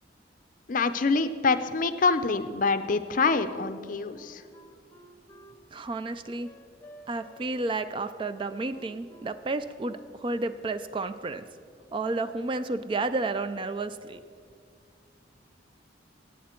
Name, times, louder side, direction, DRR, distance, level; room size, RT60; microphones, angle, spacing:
voice 1, 0.7-4.4, left 4 dB, 45° left, 12 dB, 0.5 m, -25 dB
Wind instrument woodwind instrument, 4.1-10.4, right 1 dB, 15° left, 0.8 m, -53 dB
voice 2, 5.7-6.5 7.1-11.4 11.9-14.2, right 3 dB, 25° right, 12 dB, 0.3 m, -31 dB
17.5 x 8.4 x 4.4 m, 2.2 s
head